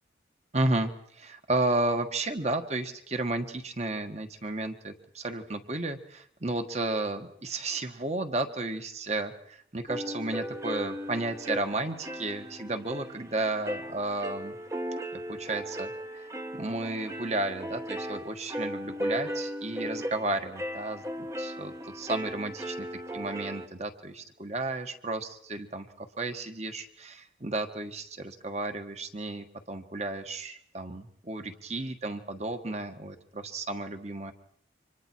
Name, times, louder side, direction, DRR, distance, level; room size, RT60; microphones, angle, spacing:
voice 1, 0.5-14.5 15.1-22.9 23.1-34.3, right 2 dB, 35° right, 7 dB, 1.5 m, -33 dB
sound 1, 9.9-23.7, equal, 15° right, 1.0 m, -37 dB
29.5 x 25.5 x 4.6 m, 0.67 s
head